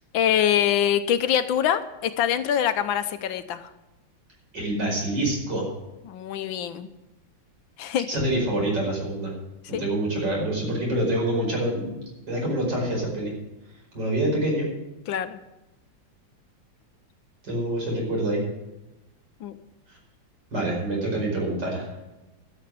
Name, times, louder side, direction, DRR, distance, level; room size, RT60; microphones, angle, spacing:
voice 1, 0.1-3.7 6.1-6.9 7.8-8.1 9.7-9.8 15.1-15.4 19.4-19.6, left 9 dB, 80° left, 11 dB, 1.5 m, -24 dB
voice 2, 4.5-5.7 8.1-9.3 9.7-12.0 12.3-13.3 13.9-14.7 17.4-18.4 20.5-21.9, right 1 dB, 60° right, -2 dB, 5.8 m, -26 dB
12.5 x 7.7 x 7.6 m, 1.0 s
omnidirectional pair, 2.2 m